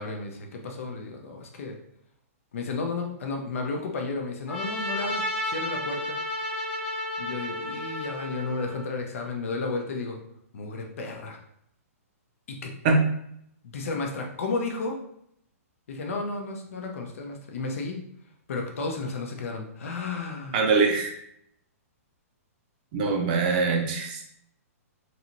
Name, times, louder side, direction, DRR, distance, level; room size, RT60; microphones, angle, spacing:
voice 1, 0.0-1.7 2.5-6.2 7.2-10.2 10.5-11.4 12.5-12.7 13.6-15.0 15.9-18.0 18.5-20.7, left 3 dB, 60° left, 2 dB, 0.7 m, -33 dB
Trumpet, 4.5-8.9, left 1 dB, 10° left, 0.8 m, -32 dB
voice 2, 20.5-21.1 22.9-24.2, right 4 dB, 35° right, 1 dB, 0.5 m, -23 dB
3.2 x 2.9 x 2.6 m, 0.72 s
hypercardioid pair, 165°, 8 cm